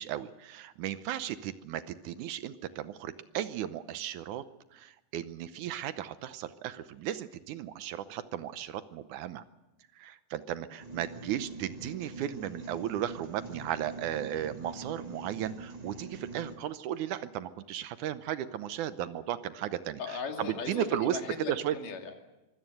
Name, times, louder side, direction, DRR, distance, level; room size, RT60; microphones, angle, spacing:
voice 1, 0.0-4.4 4.7-9.4 10.0-21.2 21.5-21.8, right 11 dB, 75° right, 13 dB, 2.2 m, -35 dB
sound 1, 10.8-16.6, right 3 dB, 35° right, 0.6 m, -44 dB
voice 2, 20.0-22.2, left 5 dB, 80° left, 4 dB, 4.0 m, -38 dB
24.5 x 16.5 x 7.8 m, 1.0 s
omnidirectional pair, 3.7 m